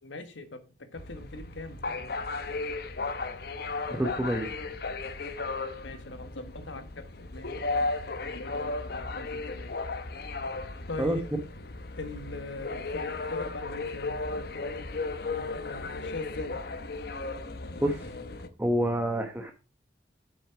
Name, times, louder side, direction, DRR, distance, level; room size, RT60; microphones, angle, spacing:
voice 1, 0.0-0.6 0.9-2.2 5.8-9.8 10.9-11.2 12.0-14.9 15.2-16.6, left 2 dB, 85° left, 9 dB, 1.5 m, -41 dB
sound 1, 1.0-18.5, left 3 dB, 55° left, 0.9 m, -35 dB
voice 2, 3.9-4.5 11.0-11.2 17.8-18.1 18.6-19.5, right 1 dB, 10° right, 3 dB, 1.0 m, -27 dB
8.6 x 6.3 x 5.8 m, 0.33 s
head